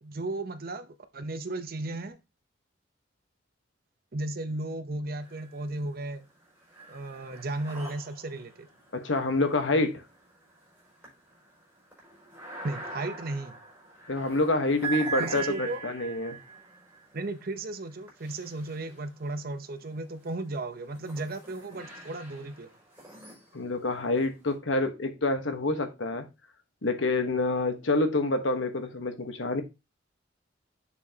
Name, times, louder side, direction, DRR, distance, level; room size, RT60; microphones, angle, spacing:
voice 1, 0.0-2.2 4.1-6.2 6.9-8.7 12.6-13.6 15.2-15.8 17.1-22.7, right 2 dB, 50° right, 0.8 m, -35 dB
sound 1, 5.2-5.9 6.2-19.4 20.0-24.5, right 4 dB, 10° right, 5.1 m, -42 dB
voice 2, 8.9-10.0 14.1-16.4 23.5-26.2 26.8-29.6, left 2 dB, 85° left, 1.2 m, -27 dB
7.2 x 6.9 x 2.8 m
head